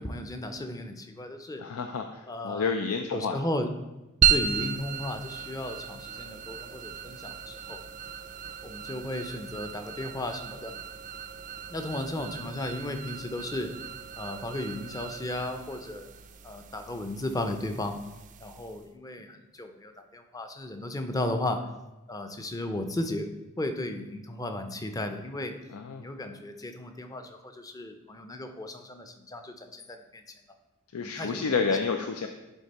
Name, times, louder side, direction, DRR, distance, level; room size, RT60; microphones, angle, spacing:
voice 1, 0.0-1.6 2.3-2.7 3.1-3.7 4.3-7.8 8.6-10.7 11.7-13.7 14.2-16.1 16.4-18.0 18.4-21.6 22.1-23.3 23.6-25.5 26.0-30.2 31.0-31.5, left 1 dB, 15° left, 6 dB, 0.5 m, -35 dB
voice 2, 1.6-3.4 25.7-26.0 30.9-32.3, left 5 dB, 85° left, 5 dB, 0.5 m, -30 dB
sound 1, 4.2-18.9, right 8 dB, 35° right, 0.4 m, -34 dB
10.5 x 3.7 x 4.2 m, 1.0 s
head